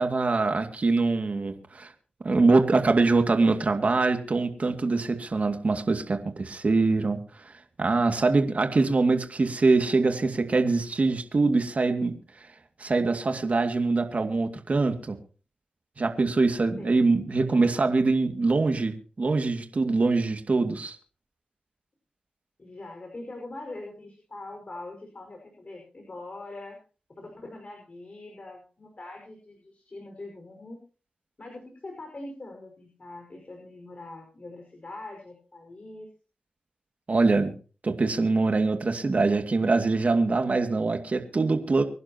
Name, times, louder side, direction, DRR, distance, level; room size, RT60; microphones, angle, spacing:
voice 1, 0.0-1.9 2.2-7.5 7.8-12.5 12.8-15.2 16.0-21.0 37.1-37.5 37.8-41.8, right 3 dB, 50° right, 5 dB, 2.3 m, -24 dB
voice 2, 17.4-17.9 22.6-26.8 27.1-30.8 31.4-36.1, left 2 dB, 45° left, 1 dB, 5.6 m, -43 dB
25.5 x 11.0 x 3.0 m, 0.37 s
cardioid pair, 55°, 3 cm